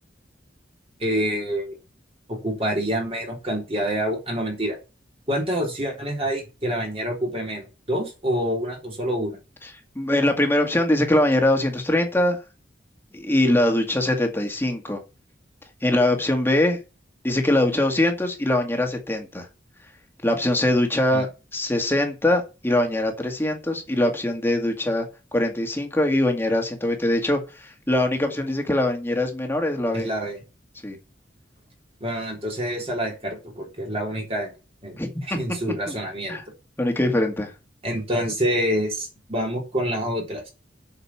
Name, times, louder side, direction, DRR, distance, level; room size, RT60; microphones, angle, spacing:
voice 1, 1.0-1.8 2.3-4.8 5.3-9.4 21.1-21.3 29.9-30.4 32.0-34.5 34.8-36.4 37.8-40.5, equal, 35° right, 3.7 m, -27 dB
voice 2, 10.0-12.4 13.1-15.0 15.8-16.8 17.2-19.5 20.2-25.1 25.3-30.1 30.8-31.0 35.0-35.4 35.9-36.0 36.3-36.4 36.8-37.5, left 1 dB, 15° left, 2.0 m, -22 dB
8.1 x 6.7 x 7.2 m
head